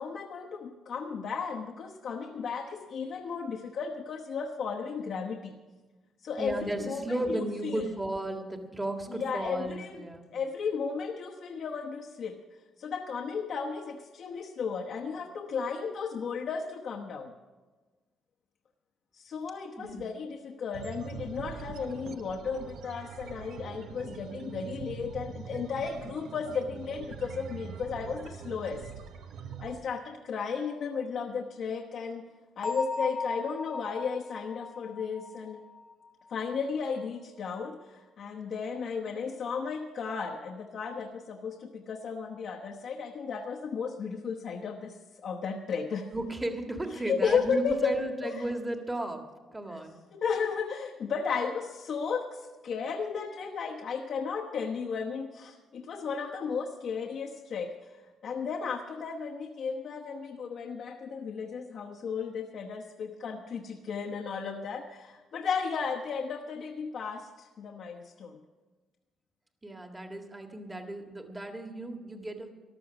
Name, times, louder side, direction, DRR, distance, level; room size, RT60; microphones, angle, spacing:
voice 1, 0.0-5.6 6.2-7.9 9.1-10.0 10.3-12.4 12.8-17.3 19.1-28.9 29.6-32.3 32.6-35.6 36.3-45.0 45.2-46.1 46.9-48.5 49.7-49.8 50.1-57.8 58.2-68.4, left 5 dB, 65° left, 0 dB, 1.0 m, -34 dB
voice 2, 6.4-10.3 19.8-20.1 46.1-49.2 49.5-50.0 69.6-72.5, right 1 dB, 15° right, 4 dB, 1.7 m, -35 dB
sound 1, 20.7-29.8, right 7 dB, 75° right, 0.9 m, -43 dB
Bell, 32.6-36.3, left 3 dB, 35° left, 1.0 m, -37 dB
14.0 x 11.5 x 6.0 m, 1.3 s
cardioid pair, 90°, 0 cm